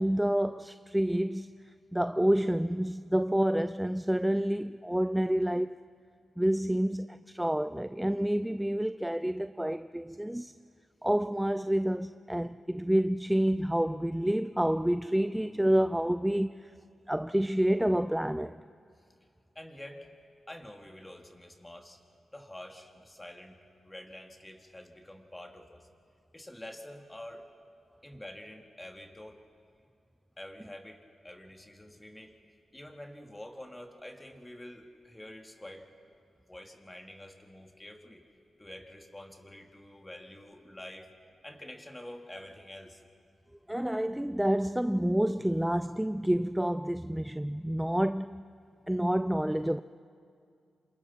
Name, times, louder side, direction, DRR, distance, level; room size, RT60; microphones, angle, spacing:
voice 1, 0.0-1.5 1.9-5.8 6.4-10.5 11.0-16.7 17.1-18.6 43.7-48.4 48.9-49.8, right 1 dB, 5° right, 0.4 m, -28 dB
voice 2, 19.5-20.1 20.5-22.0 22.3-23.6 23.8-25.9 26.3-27.5 28.0-29.4 30.4-32.3 32.7-35.9 36.5-38.2 38.6-41.1 41.4-43.0, left 1 dB, 15° left, 2.7 m, -47 dB
28.0 x 26.5 x 4.5 m
cardioid pair, 65°, 0 cm